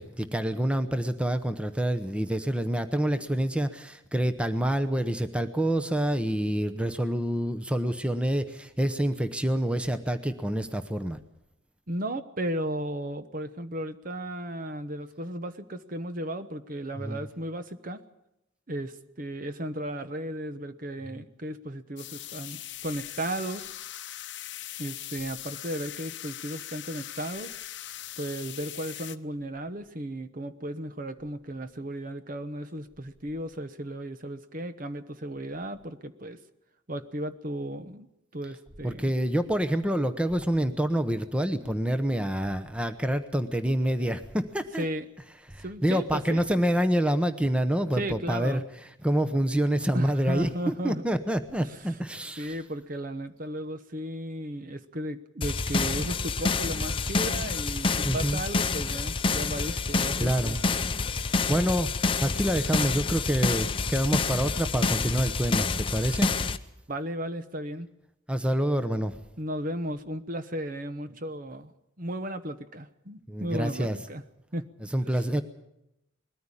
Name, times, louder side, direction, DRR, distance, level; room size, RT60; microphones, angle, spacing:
voice 1, 0.0-11.2 17.0-17.3 38.8-44.9 45.5-48.6 49.0-52.6 58.0-58.4 60.2-60.6 61.2-61.9 62.2-66.3 68.3-69.2 73.3-74.0 74.9-75.4, right 1 dB, 5° right, 10 dB, 0.8 m, -27 dB
voice 2, 11.9-18.0 18.7-23.7 24.8-27.5 28.2-36.4 36.9-38.1 38.3-39.1 44.8-45.1 45.6-46.5 48.0-48.6 49.9-51.0 51.6-52.0 52.4-60.6 66.9-67.9 69.4-71.7 72.0-74.2 74.5-74.6 75.1-75.2, right 1 dB, 45° right, 11 dB, 1.0 m, -35 dB
sound 1, 22.0-29.2, left 13 dB, 60° left, 0.8 m, -40 dB
sound 2, 55.4-66.6, left 4 dB, 25° left, 0.7 m, -28 dB
21.0 x 14.0 x 9.9 m, 0.86 s
head